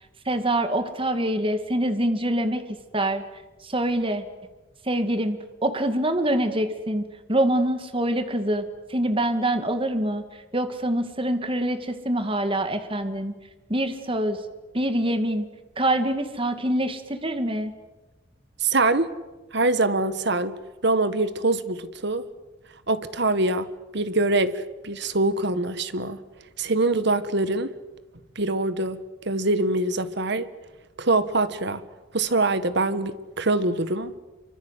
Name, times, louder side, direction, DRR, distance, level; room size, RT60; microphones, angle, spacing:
voice 1, 0.3-2.6 2.9-3.2 3.6-4.2 4.8-7.0 7.3-8.6 8.9-10.2 10.5-13.3 13.7-14.4 14.7-15.5 15.8-17.7, right 1 dB, 25° right, 9 dB, 2.1 m, -25 dB
voice 2, 18.6-19.1 19.5-20.5 20.8-22.3 22.9-23.7 23.9-26.2 26.6-27.7 28.3-29.0 29.2-30.5 31.0-31.8 32.1-34.1, right 2 dB, 60° right, 13 dB, 1.6 m, -24 dB
27.0 x 24.5 x 8.3 m, 1.1 s
head